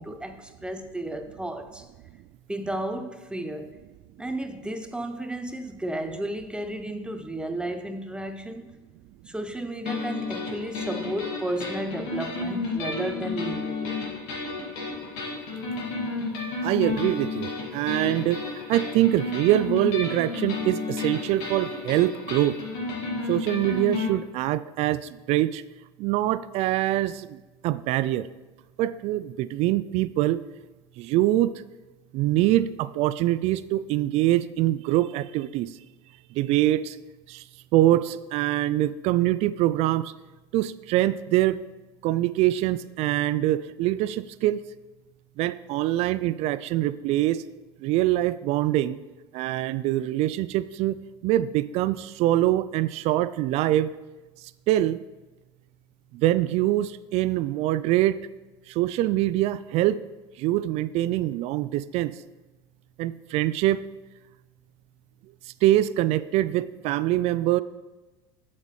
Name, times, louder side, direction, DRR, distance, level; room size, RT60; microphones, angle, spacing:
voice 1, 0.0-1.9 2.5-3.8 4.2-8.7 9.3-13.9, right 1 dB, 5° right, 0.6 m, -33 dB
sound 1, 9.9-24.1, left 3 dB, 65° left, 2.1 m, -32 dB
voice 2, 16.6-18.4 18.7-22.6 23.3-25.6 26.0-27.4 27.6-28.3 28.8-30.4 31.0-31.5 32.1-35.7 36.4-37.0 37.3-37.4 37.7-40.1 40.5-41.6 42.0-44.6 45.4-47.4 47.8-49.0 49.3-51.0 51.2-53.9 54.7-55.0 56.1-58.2 58.7-60.0 60.4-62.1 63.0-63.8 65.6-67.6, right 14 dB, 50° right, 0.4 m, -24 dB
8.1 x 7.3 x 3.2 m
hypercardioid pair, 85°, 14 cm